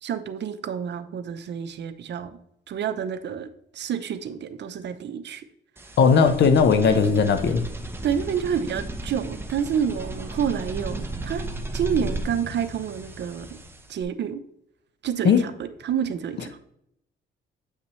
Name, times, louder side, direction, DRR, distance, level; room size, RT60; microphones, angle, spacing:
voice 1, 0.0-2.4 2.7-3.5 3.7-5.4 8.0-11.5 11.7-13.5 13.9-14.4 15.0-16.6, right 8 dB, 60° right, 10 dB, 0.8 m, -28 dB
sound 1, 5.8-14.0, right 1 dB, 10° right, 0.9 m, -35 dB
voice 2, 6.0-7.6 15.2-15.4, left 5 dB, 60° left, 9 dB, 1.0 m, -17 dB
8.4 x 5.8 x 3.2 m, 0.74 s
cardioid pair, 90°, 20 cm